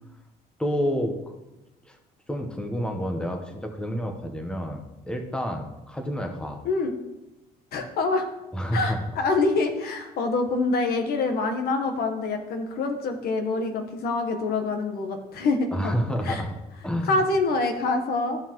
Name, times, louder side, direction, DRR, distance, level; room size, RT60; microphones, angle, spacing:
voice 1, 0.6-1.4 1.8-2.0 2.3-6.6 8.5-9.0 15.7-16.5 16.8-17.2, equal, 5° left, 4 dB, 1.0 m, -29 dB
voice 2, 7.7-8.3 8.7-15.9 16.2-16.4 17.1-18.4, left 3 dB, 65° left, 6 dB, 1.2 m, -25 dB
13.0 x 5.5 x 3.0 m, 0.97 s
cardioid pair, 110°, 17 cm